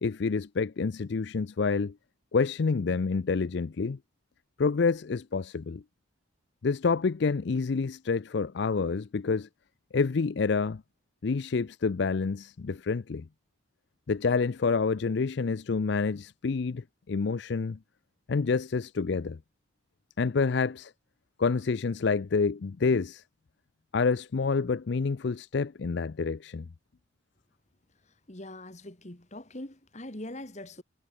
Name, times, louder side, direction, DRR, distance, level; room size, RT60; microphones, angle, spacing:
voice 1, 0.0-1.9 2.3-4.0 4.6-5.8 6.6-9.5 9.9-10.8 11.2-13.3 14.1-17.8 18.3-19.4 20.2-20.9 21.4-23.2 23.9-26.7, left 4 dB, 55° left, 0.4 m, -28 dB
voice 2, 28.3-30.8, left 1 dB, 35° left, 2.1 m, -42 dB
head